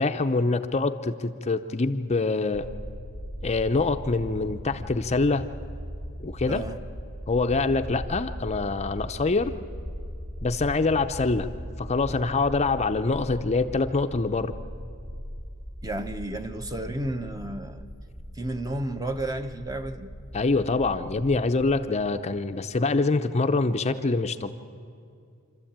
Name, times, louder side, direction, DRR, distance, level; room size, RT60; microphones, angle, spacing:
voice 1, 0.0-2.7 3.4-5.5 6.2-6.6 7.3-9.5 10.4-11.5 11.8-14.6 20.3-24.5, left 3 dB, 30° left, 8 dB, 0.6 m, -25 dB
sound 1, 2.5-21.8, equal, 35° right, 7.2 m, -39 dB
voice 2, 15.8-17.9 18.3-20.1, right 1 dB, 15° right, 7 dB, 0.9 m, -32 dB
26.5 x 13.5 x 8.8 m, 2.4 s
head